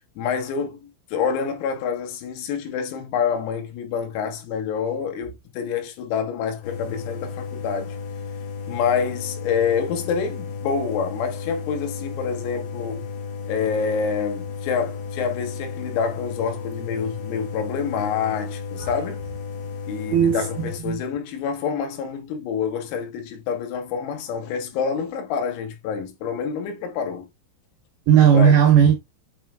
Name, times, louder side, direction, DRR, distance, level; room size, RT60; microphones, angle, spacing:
voice 1, 0.2-8.0 8.7-13.1 13.5-19.2 19.9-27.3 28.3-28.6, left 6 dB, 85° left, 4.1 m, -27 dB
sound 1, 6.6-20.8, left 5 dB, 60° left, 2.7 m, -33 dB
voice 2, 20.1-21.0 28.1-28.9, right 8 dB, 70° right, 2.5 m, -16 dB
8.4 x 3.2 x 3.5 m
omnidirectional pair, 6.0 m